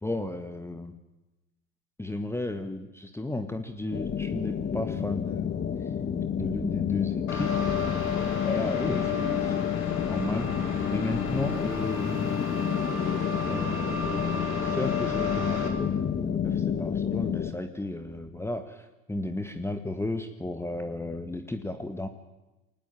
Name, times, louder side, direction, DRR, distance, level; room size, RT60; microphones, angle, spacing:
voice 1, 0.0-0.9 2.0-5.9 6.3-7.5 8.2-10.5 10.9-12.4 13.5-14.3 14.6-22.1, left 2 dB, 5° left, 8 dB, 1.7 m, -34 dB
sound 1, 3.9-17.5, left 8 dB, 25° left, 1.6 m, -30 dB
sound 2, 7.3-15.7, left 5 dB, 85° left, 3.9 m, -32 dB
23.5 x 18.5 x 9.1 m, 1.0 s
hypercardioid pair, 80°, 40 cm